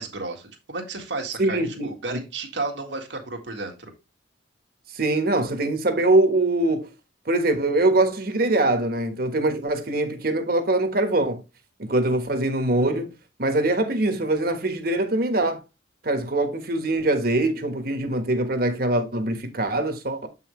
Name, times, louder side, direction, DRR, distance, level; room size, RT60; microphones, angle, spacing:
voice 1, 0.0-3.9, right 3 dB, 80° right, 1.9 m, -33 dB
voice 2, 1.4-2.2 4.9-6.9 7.3-11.4 11.8-13.1 13.4-15.6 16.0-20.3, right 2 dB, 55° right, 1.4 m, -23 dB
7.8 x 5.6 x 3.2 m
head